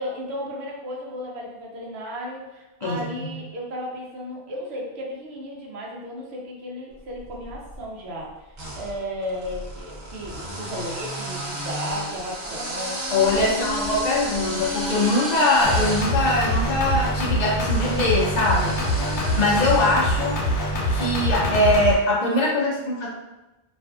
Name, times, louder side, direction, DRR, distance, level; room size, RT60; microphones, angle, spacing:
voice 1, 0.0-13.0 13.3-14.2 19.3-19.8, equal, 80° right, -2 dB, 0.9 m, -34 dB
voice 2, 2.8-3.4 13.1-18.8 19.4-20.4 20.9-23.1, left 2 dB, 55° left, -3 dB, 0.5 m, -22 dB
sound 1, 7.2-7.8 8.5-20.8, equal, 50° right, 0.7 m, -33 dB
sound 2, 15.6-22.0, equal, 85° left, 0.9 m, -24 dB
2.5 x 2.4 x 2.3 m, 1.0 s
omnidirectional pair, 1.1 m